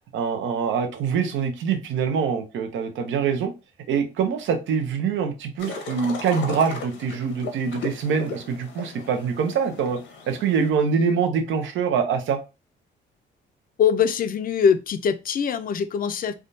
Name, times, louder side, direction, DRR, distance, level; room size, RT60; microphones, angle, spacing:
voice 1, 0.1-3.5 3.9-10.0 10.3-12.4, right 6 dB, 75° right, 0.7 m, -24 dB
sound 1, 5.6-10.7, left 3 dB, 75° left, 0.9 m, -36 dB
voice 2, 13.8-16.3, left 7 dB, 45° left, 0.5 m, -22 dB
3.5 x 2.3 x 2.6 m
cardioid pair, 90°, 20 cm